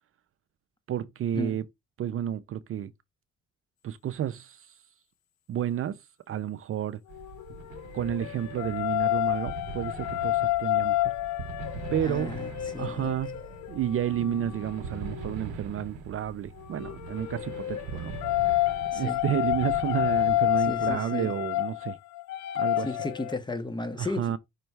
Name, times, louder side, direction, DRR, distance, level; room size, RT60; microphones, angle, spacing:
voice 1, 0.9-1.6 2.0-2.9 3.8-4.7 5.5-6.0 6.3-7.0 7.9-11.1 11.9-12.3 12.8-13.4 13.7-18.2 18.9-22.0 22.5-22.9 24.0-24.4, right 10 dB, 50° right, 0.4 m, -31 dB
sound 1, 7.1-15.4 16.6-23.3, left 16 dB, 70° left, 0.6 m, -29 dB
sound 2, 7.1-21.0, right 4 dB, 90° right, 0.9 m, -42 dB
voice 2, 12.0-13.1 14.2-14.4 18.9-19.2 20.6-21.3 22.8-24.4, left 2 dB, 15° left, 0.8 m, -34 dB
5.2 x 2.2 x 4.5 m
cardioid pair, 90°, 30 cm